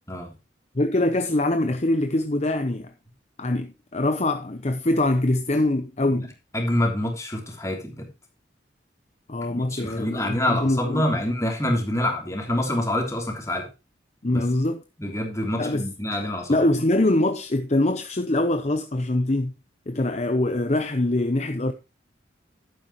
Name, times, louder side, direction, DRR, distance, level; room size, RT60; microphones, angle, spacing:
voice 1, 0.7-2.9 3.4-6.3 9.3-11.0 14.2-14.8 15.6-15.9 16.5-19.5 19.9-21.7, left 1 dB, 35° left, 0.8 m, -23 dB
voice 2, 6.5-8.1 9.5-13.7 14.3-14.4 15.0-16.7, left 1 dB, 15° left, 3.2 m, -26 dB
11.5 x 9.4 x 3.1 m
head